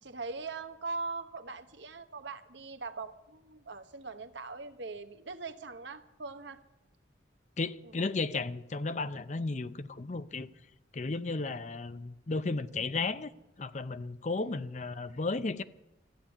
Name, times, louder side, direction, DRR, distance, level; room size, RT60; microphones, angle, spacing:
voice 1, 0.0-6.6 7.8-7.9 14.4-14.5, right 3 dB, 70° right, 1.2 m, -41 dB
voice 2, 7.6-10.5 10.9-13.3 13.6-15.6, left 3 dB, 40° left, 0.6 m, -34 dB
14.0 x 8.9 x 9.9 m
head